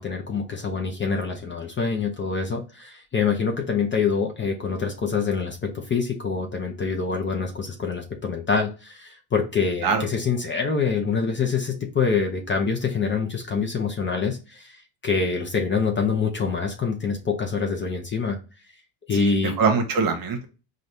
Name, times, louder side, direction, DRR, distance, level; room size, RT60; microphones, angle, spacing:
voice 1, 0.0-18.4 19.1-19.6, left 5 dB, 25° left, 3 dB, 0.6 m, -25 dB
voice 2, 19.1-20.5, right 5 dB, 45° right, 5 dB, 1.1 m, -23 dB
4.0 x 2.5 x 3.3 m, 0.32 s
supercardioid pair, 110°, 48 cm